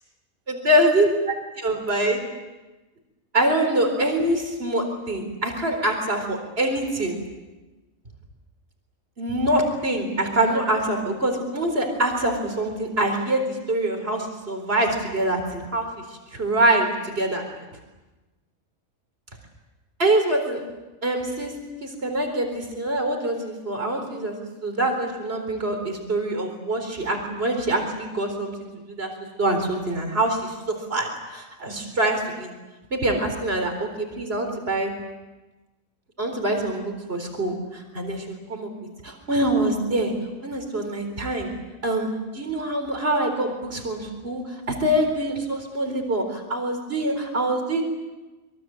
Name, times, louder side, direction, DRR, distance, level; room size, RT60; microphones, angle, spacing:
voice 1, 0.5-2.2 3.3-7.2 9.2-15.9 16.3-17.7 20.0-20.6 21.0-21.5 21.8-24.4 24.6-29.1 29.4-32.5 32.9-34.9 36.2-38.7 39.0-40.1 40.4-41.5 41.8-47.8, right 1 dB, 45° right, 4 dB, 4.4 m, -25 dB
26.0 x 23.5 x 7.8 m, 1.1 s
omnidirectional pair, 1.4 m